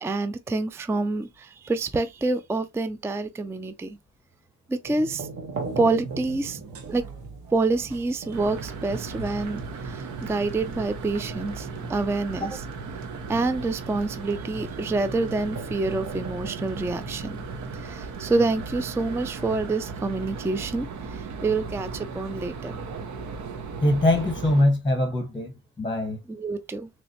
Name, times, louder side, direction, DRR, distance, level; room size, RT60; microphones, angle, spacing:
voice 1, 0.0-4.0 4.7-5.3 5.8-6.6 6.9-7.0 7.5-12.6 13.3-17.4 17.8-22.8 26.3-26.9, right 3 dB, 10° right, 0.4 m, -27 dB
sound 1, 4.8-17.8, right 4 dB, 45° right, 1.3 m, -42 dB
sound 2, 5.5-11.3, right 4 dB, 90° right, 1.3 m, -43 dB
sound 3, 8.3-24.6, right 4 dB, 70° right, 1.0 m, -36 dB
voice 2, 23.8-26.2, left 1 dB, 15° left, 1.0 m, -23 dB
4.0 x 3.2 x 2.8 m
cardioid pair, 90°, 30 cm